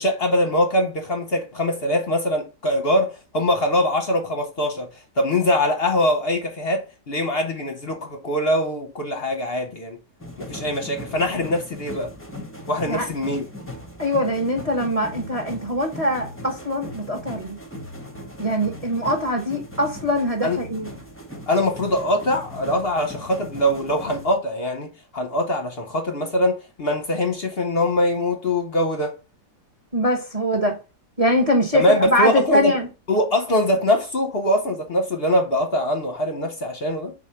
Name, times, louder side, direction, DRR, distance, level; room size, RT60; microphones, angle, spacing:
voice 1, 0.0-4.9 5.2-10.0 10.4-12.1 12.7-13.4 20.4-20.6 21.5-29.1 31.7-32.7 33.1-37.1, left 1 dB, 45° left, 0.9 m, -22 dB
sound 1, 10.2-24.3, left 1 dB, 10° left, 0.7 m, -38 dB
voice 2, 14.0-17.6 18.4-20.9 29.9-30.8 31.2-32.9, equal, 25° right, 1.0 m, -22 dB
4.7 x 4.1 x 5.6 m
omnidirectional pair, 1.8 m